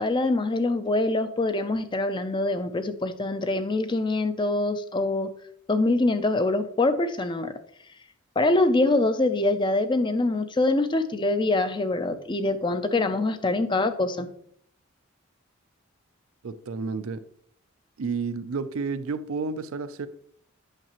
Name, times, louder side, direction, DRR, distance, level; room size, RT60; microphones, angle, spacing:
voice 1, 0.0-5.3 5.7-7.5 8.4-14.3, left 2 dB, 20° left, 0.4 m, -24 dB
voice 2, 16.4-17.2 18.0-20.1, right 4 dB, 75° right, 0.5 m, -31 dB
8.9 x 5.7 x 3.0 m
head